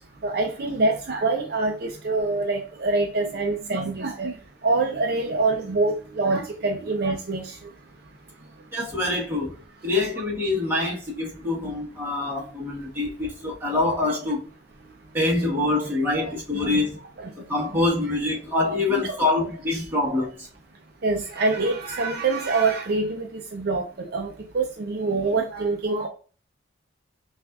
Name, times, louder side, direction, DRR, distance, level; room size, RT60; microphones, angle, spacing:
voice 1, 0.2-4.3 4.6-7.6 15.7-15.8 16.5-16.8 17.2-17.3 18.9-19.2 21.0-26.1, right 3 dB, 55° right, 0.5 m, -25 dB
voice 2, 8.7-14.4 15.1-17.0 17.4-20.5, left 2 dB, 10° right, 1.2 m, -25 dB
5.8 x 2.5 x 2.3 m
head